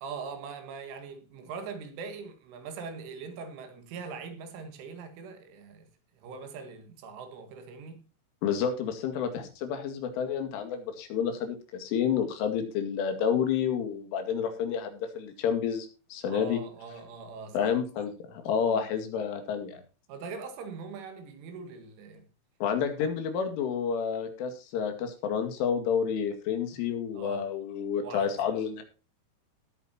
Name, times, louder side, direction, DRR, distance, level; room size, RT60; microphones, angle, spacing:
voice 1, 0.0-5.9 6.2-8.1 16.2-18.1 18.7-18.9 20.1-22.3 27.1-27.5 28.0-28.4, right 5 dB, 85° right, 4.3 m, -42 dB
voice 2, 8.4-16.6 17.5-19.8 22.6-28.8, left 7 dB, 85° left, 4.7 m, -30 dB
18.5 x 8.8 x 2.9 m
omnidirectional pair, 5.5 m